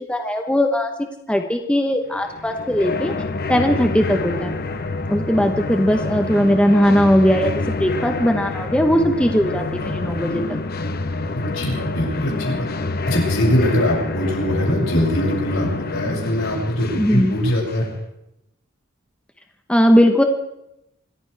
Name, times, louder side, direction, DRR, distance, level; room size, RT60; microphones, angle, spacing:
voice 1, 0.1-0.9 1.3-3.1 3.5-4.6 5.1-9.7 9.9-10.6 17.0-17.4 19.7-20.2, equal, 5° left, 4 dB, 1.0 m, -18 dB
sound 1, 2.2-18.0, left 3 dB, 50° left, 1.1 m, -27 dB
voice 2, 11.3-12.7 13.0-17.9, left 1 dB, 70° left, -2 dB, 6.7 m, -22 dB
26.0 x 14.0 x 3.4 m, 0.85 s
head